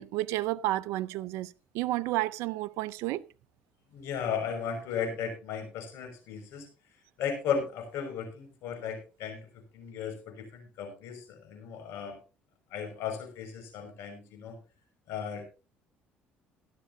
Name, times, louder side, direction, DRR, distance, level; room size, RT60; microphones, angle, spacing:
voice 1, 0.0-3.2, right 17 dB, 80° right, 0.6 m, -31 dB
voice 2, 3.9-6.7 7.2-9.5 9.7-12.2 12.7-14.6 15.1-15.5, left 7 dB, 75° left, 5.6 m, -35 dB
16.5 x 12.0 x 2.7 m
supercardioid pair, 75°, 5 cm